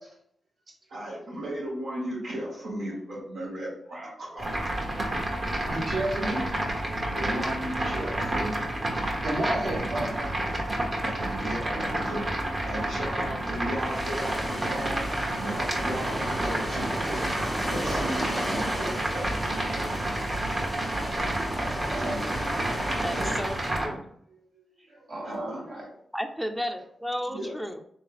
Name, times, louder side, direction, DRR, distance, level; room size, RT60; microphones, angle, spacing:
voice 1, 0.9-4.5 7.1-8.6 9.5-10.1 11.0-12.3 12.6-15.1 15.3-16.9 17.7-19.3 21.9-22.3 23.1-23.3 25.2-25.6 27.3-27.5, right 1 dB, 90° right, -10 dB, 1.5 m, -35 dB
sound 1, 4.4-23.9, right 1 dB, 40° right, 1.2 m, -30 dB
voice 2, 5.5-6.4 9.2-10.3 11.7-11.8 20.6-22.2 24.9-25.9, right 1 dB, 60° right, -3 dB, 1.8 m, -33 dB
sound 2, 13.8-23.8, equal, 20° right, 1.5 m, -34 dB
voice 3, 23.0-23.6 23.8-24.1 26.1-27.8, equal, 5° right, 5 dB, 0.4 m, -32 dB
3.6 x 3.2 x 3.7 m, 0.69 s
cardioid pair, 60°, 0 cm